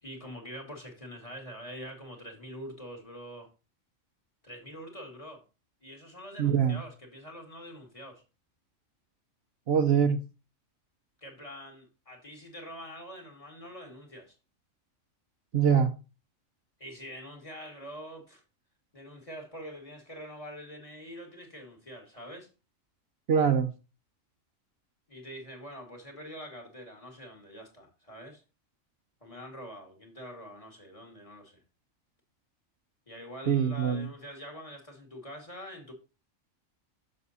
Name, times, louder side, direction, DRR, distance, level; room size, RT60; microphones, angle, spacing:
voice 1, 0.0-3.5 4.4-5.4 5.8-8.2 11.2-14.4 16.8-18.4 18.9-22.5 25.1-28.4 29.2-31.6 33.1-35.9, equal, 25° left, 1.9 m, -45 dB
voice 2, 6.4-6.8 9.7-10.2 15.5-16.0 23.3-23.7 33.5-34.1, right 7 dB, 55° right, 0.9 m, -24 dB
6.7 x 6.3 x 4.1 m
omnidirectional pair, 1.4 m